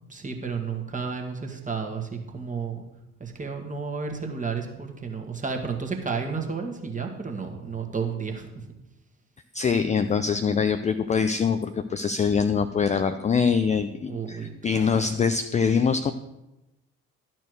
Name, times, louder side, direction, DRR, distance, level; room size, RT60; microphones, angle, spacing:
voice 1, 0.1-2.8 3.2-8.7 14.1-15.1, right 5 dB, 20° right, 2 dB, 1.7 m, -32 dB
voice 2, 9.5-16.1, left 6 dB, 20° left, 9 dB, 0.4 m, -24 dB
11.5 x 4.5 x 6.4 m, 0.94 s
figure-of-eight pair, 45°, 38 cm